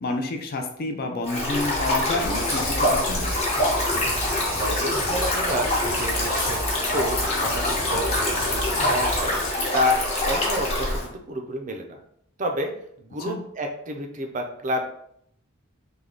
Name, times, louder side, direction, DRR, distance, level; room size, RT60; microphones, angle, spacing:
voice 1, 0.0-3.3 13.2-13.4, left 2 dB, 45° left, 4 dB, 0.4 m, -29 dB
Stream, 1.2-11.0, left 1 dB, 30° left, 0.8 m, -25 dB
sound 1, 1.6-9.4, right 2 dB, 90° right, 0.6 m, -35 dB
sound 2, 2.2-9.5, left 3 dB, 75° left, 0.9 m, -34 dB
voice 2, 4.6-6.6 6.9-9.4 9.7-10.0 10.2-12.0 12.4-12.7 13.0-14.8, equal, 35° right, 4 dB, 0.4 m, -29 dB
3.3 x 2.2 x 3.7 m, 0.69 s
head